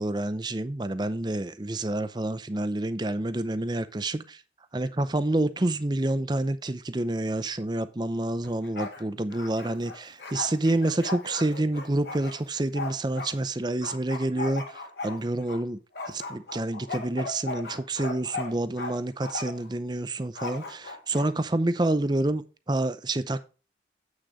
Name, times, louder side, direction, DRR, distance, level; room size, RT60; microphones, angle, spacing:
voice 1, 0.0-4.4 4.7-15.8 16.1-23.4, right 2 dB, 25° right, 0.6 m, -28 dB
Bark, 8.4-9.0 9.3-13.3 13.8-15.6 15.9-18.9 19.2-19.7 20.3-21.3, left 3 dB, 75° left, 1.9 m, -37 dB
8.2 x 6.4 x 3.7 m
head